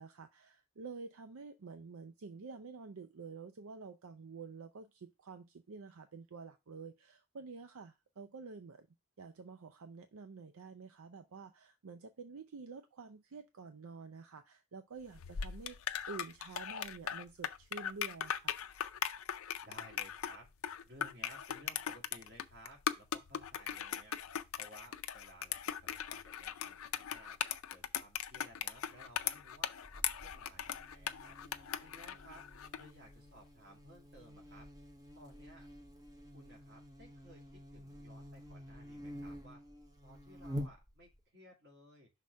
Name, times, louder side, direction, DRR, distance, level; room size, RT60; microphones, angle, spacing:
voice 1, 0.0-8.9 9.2-18.5, right 4 dB, 75° right, 8 dB, 0.5 m, -49 dB
sound 1, 15.1-32.9, left 9 dB, 70° left, 0.5 m, -39 dB
voice 2, 19.6-20.5 20.8-24.2 24.5-27.4 27.7-31.4 31.8-32.5 32.8-34.7 35.1-35.7 36.3-39.6 40.0-42.1, right 1 dB, 50° right, 0 dB, 2.3 m, -58 dB
Buzz, 29.8-41.2, equal, 15° right, 0.7 m, -49 dB
5.9 x 3.6 x 5.2 m, 0.24 s
head